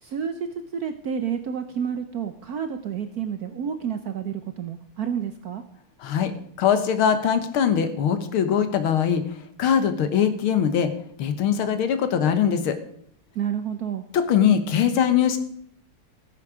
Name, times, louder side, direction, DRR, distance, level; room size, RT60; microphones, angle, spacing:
voice 1, 0.0-5.6 13.3-14.0, right 8 dB, 65° right, 8 dB, 0.9 m, -30 dB
voice 2, 6.0-6.3 6.6-9.2 9.6-10.9 11.2-12.8 14.1-15.4, left 8 dB, 80° left, 9 dB, 2.0 m, -21 dB
15.5 x 8.5 x 5.0 m, 0.67 s
omnidirectional pair, 2.3 m